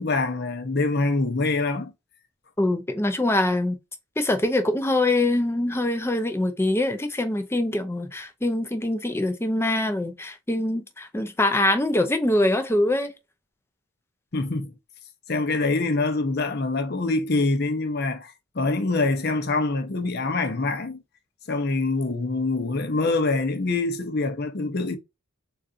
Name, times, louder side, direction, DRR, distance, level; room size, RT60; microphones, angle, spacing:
voice 1, 0.0-1.9 14.3-14.7 15.3-21.0 21.5-25.0, left 3 dB, 45° left, 0.7 m, -25 dB
voice 2, 2.6-3.8 4.2-13.1, left 1 dB, 10° left, 0.4 m, -24 dB
3.8 x 2.4 x 2.4 m
head